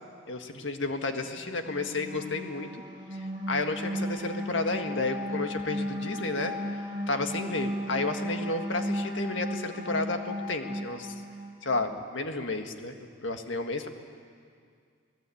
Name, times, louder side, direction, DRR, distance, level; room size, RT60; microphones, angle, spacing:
voice 1, 0.3-2.7 3.1-6.5 7.1-11.1 11.6-13.0 13.2-13.9, left 3 dB, 70° left, 5 dB, 1.7 m, -32 dB
sound 1, 1.3-11.8, equal, 25° right, 2.6 m, -35 dB
27.5 x 17.5 x 8.6 m, 2.2 s
head